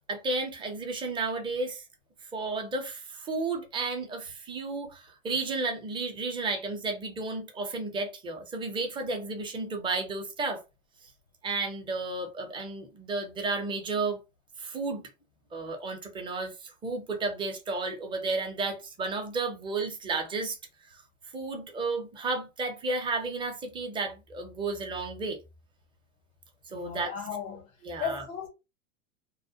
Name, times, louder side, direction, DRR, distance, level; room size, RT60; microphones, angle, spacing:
voice 1, 0.1-1.8 2.3-10.6 11.4-14.2 14.6-15.0 15.5-20.6 20.9-21.0 21.3-25.4 26.7-27.1 27.8-28.2, right 3 dB, 10° right, 0.6 m, -32 dB
voice 2, 26.7-27.7 28.0-28.5, left 7 dB, 90° left, 0.9 m, -35 dB
2.3 x 2.1 x 2.6 m
hypercardioid pair, 105°, 40 cm